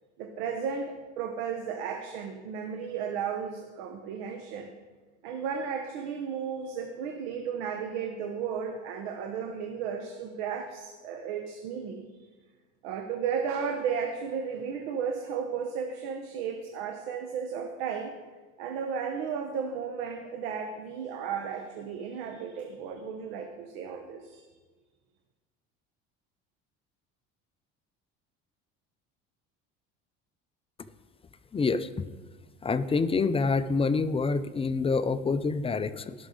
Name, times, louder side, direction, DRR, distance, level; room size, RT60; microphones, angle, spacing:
voice 1, 0.2-4.7 5.2-12.1 12.8-18.1 18.6-24.4, right 6 dB, 85° right, 4 dB, 1.1 m, -34 dB
voice 2, 31.5-31.9 32.6-36.1, left 4 dB, 20° left, 12 dB, 0.5 m, -27 dB
17.5 x 6.0 x 3.9 m, 1.3 s
supercardioid pair, 95°, 30 cm